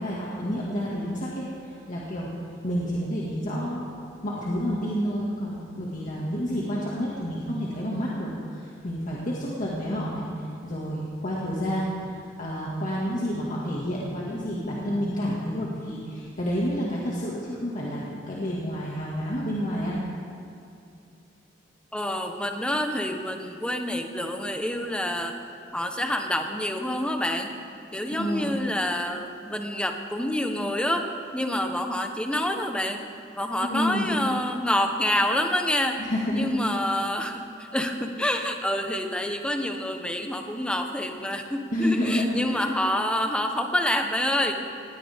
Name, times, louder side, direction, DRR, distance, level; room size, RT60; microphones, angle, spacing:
voice 1, 0.0-2.3 2.6-3.9 4.2-10.3 10.6-20.0 28.1-28.5 33.6-34.1 36.0-36.5 41.7-42.6, equal, 45° left, -5 dB, 2.1 m, -29 dB
voice 2, 21.9-25.3 25.7-27.5 27.9-31.1 31.3-33.0 33.4-36.0 36.3-44.5, left 1 dB, 5° left, 4 dB, 1.1 m, -27 dB
20.0 x 17.0 x 3.6 m, 2.6 s
head